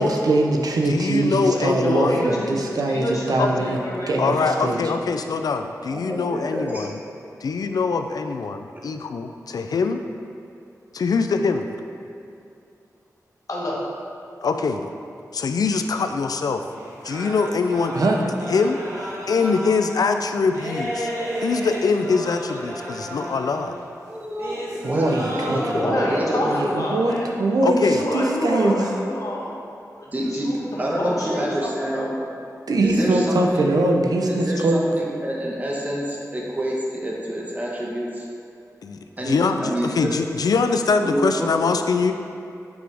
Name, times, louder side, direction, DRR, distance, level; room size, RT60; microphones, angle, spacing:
voice 1, 0.0-3.8 4.1-4.8 17.9-18.2 24.8-26.0 26.5-28.8 32.7-34.8, right 2 dB, 80° right, 1 dB, 0.7 m, -22 dB
voice 2, 0.9-2.3 3.4-3.5 4.2-7.0 7.4-10.0 10.9-11.7 14.4-14.9 15.3-16.7 17.0-18.1 18.5-18.8 19.3-21.1 21.4-23.7 27.6-28.0 38.8-39.0 39.3-42.1, left 4 dB, 80° left, 7 dB, 0.4 m, -23 dB
voice 3, 1.8-4.5 13.5-13.8 25.7-27.3 28.0-29.5 29.9-32.1, left 1 dB, 65° left, -4 dB, 1.2 m, -27 dB
voice 4, 5.9-6.9 24.1-25.8 26.1-26.8 30.1-30.5 30.8-32.2 32.8-33.7 34.3-38.3 39.2-39.3 39.6-40.1 41.0-41.5, right 1 dB, 25° right, -3 dB, 1.2 m, -27 dB
sound 1, 16.6-23.9 24.4-25.8, equal, 55° right, 1.6 m, -32 dB
8.0 x 4.7 x 3.4 m, 2.6 s
wide cardioid pair, 105°, 6 cm